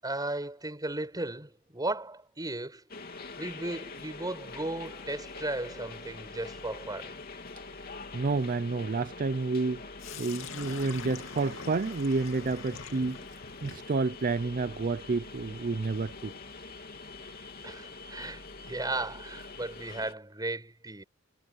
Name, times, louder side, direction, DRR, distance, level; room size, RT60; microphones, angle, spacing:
voice 1, 0.0-2.8 3.4-7.1 17.6-21.0, right 2 dB, 20° right, 6.9 m, -36 dB
sound 1, 2.9-20.1, left 3 dB, 50° left, 3.0 m, -45 dB
voice 2, 8.1-9.8 10.1-13.2 13.6-16.4, right 3 dB, 45° right, 0.5 m, -30 dB
Sink (filling or washing), 10.0-17.9, left 5 dB, 70° left, 2.8 m, -47 dB
head